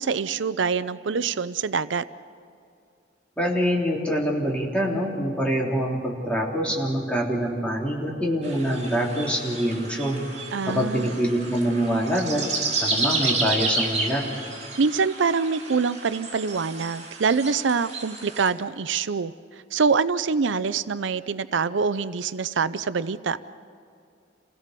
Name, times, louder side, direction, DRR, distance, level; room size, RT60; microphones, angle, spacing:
voice 1, 0.0-2.0 10.5-11.1 14.8-19.3 19.7-23.4, right 5 dB, 75° right, 14 dB, 0.6 m, -25 dB
voice 2, 3.4-10.2 10.7-12.5 12.8-14.2, equal, 5° left, -3 dB, 3.6 m, -25 dB
sound 1, 8.4-18.5, right 3 dB, 40° right, 4.7 m, -31 dB
28.5 x 17.0 x 6.8 m, 2.5 s
head